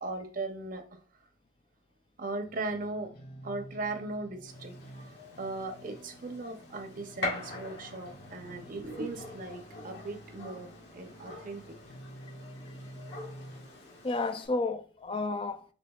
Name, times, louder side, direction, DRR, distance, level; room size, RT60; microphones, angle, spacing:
voice 1, 0.0-1.0 2.2-3.1 3.4-4.7 5.4-11.6, right 3 dB, 45° right, 0.6 m, -38 dB
sound 1, 2.4-13.6, right 1 dB, 50° left, 1.8 m, -50 dB
Gunshot gunfire, 4.5-14.5, left 2 dB, 65° left, 1.9 m, -44 dB
voice 2, 12.2-12.9 14.0-15.7, left 3 dB, 25° left, 0.3 m, -33 dB
5.3 x 3.7 x 2.3 m
head